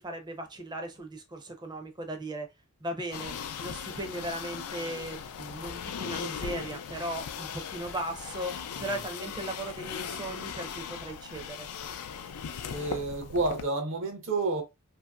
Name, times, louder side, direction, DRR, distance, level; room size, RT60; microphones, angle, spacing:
voice 1, 0.0-2.5 2.8-3.3 3.6-11.7, right 1 dB, 20° right, 0.5 m, -37 dB
sound 1, 3.1-13.6, left 7 dB, 85° left, 0.4 m, -38 dB
voice 2, 12.7-14.6, right 3 dB, 60° right, 0.7 m, -30 dB
2.8 x 2.7 x 2.2 m
head